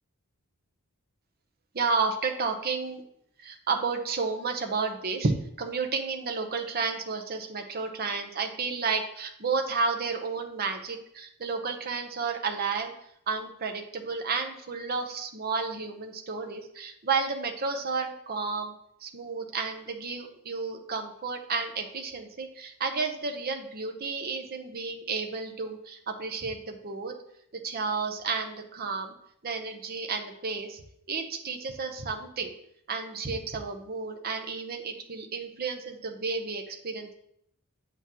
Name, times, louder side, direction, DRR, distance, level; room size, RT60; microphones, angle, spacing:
voice 1, 1.7-3.0 3.4-5.3 5.6-12.9 13.3-18.7 19.0-27.1 27.6-29.1 29.4-30.8 31.1-32.5 32.9-37.1, right 4 dB, 45° right, 4 dB, 0.8 m, -31 dB
8.7 x 6.0 x 2.9 m, 0.73 s
head